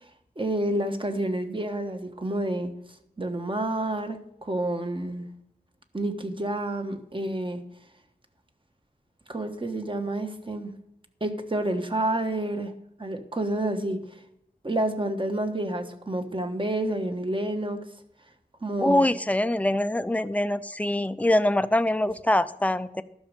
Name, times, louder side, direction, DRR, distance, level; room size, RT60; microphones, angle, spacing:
voice 1, 0.4-2.7 3.2-5.2 5.9-7.6 9.3-10.7 11.2-12.7 13.0-14.0 14.6-17.8 18.6-19.0, right 1 dB, 30° right, 6 dB, 1.3 m, -29 dB
voice 2, 18.8-23.0, left 1 dB, 10° left, 13 dB, 0.5 m, -24 dB
12.0 x 6.2 x 6.7 m, 0.78 s
wide cardioid pair, 70°, 16 cm